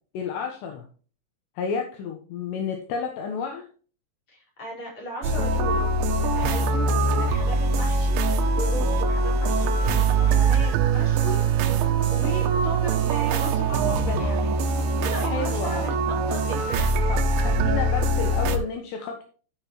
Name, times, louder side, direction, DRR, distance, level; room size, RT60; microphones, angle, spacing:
voice 1, 0.1-0.8 1.6-3.7 15.2-15.9 17.1-19.2, left 5 dB, 75° left, 2 dB, 3.3 m, -31 dB
voice 2, 4.3-5.8 6.3-8.2 8.5-11.4 12.1-14.6 15.0-17.1, left 1 dB, 30° left, -3 dB, 5.1 m, -36 dB
sound 1, 5.2-18.6, right 3 dB, 85° right, 3.3 m, -23 dB
12.5 x 7.1 x 3.0 m, 0.39 s
omnidirectional pair, 5.3 m